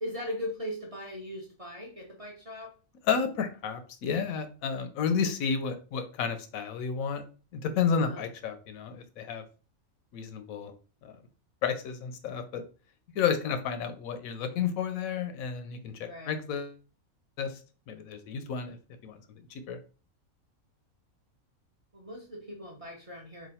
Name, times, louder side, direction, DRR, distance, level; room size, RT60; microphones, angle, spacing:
voice 1, 0.0-2.7 8.0-8.3 16.1-16.3 21.9-23.5, left 1 dB, 35° right, -2 dB, 0.6 m, -39 dB
voice 2, 3.1-7.2 7.5-9.4 10.1-10.7 11.0-11.1 11.6-12.6 13.1-16.7 17.4-17.6 17.9-18.8 19.0-19.2 19.5-19.8, left 6 dB, 80° left, 9 dB, 1.0 m, -31 dB
3.1 x 2.4 x 4.1 m, 0.35 s
omnidirectional pair, 1.5 m